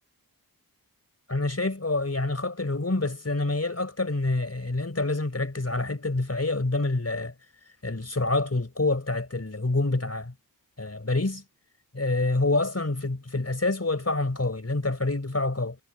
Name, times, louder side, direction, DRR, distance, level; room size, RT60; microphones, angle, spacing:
voice 1, 1.3-7.3 7.8-10.3 10.8-11.4 11.9-15.8, left 2 dB, 40° left, 4.1 m, -27 dB
wide cardioid pair, 55°, 37 cm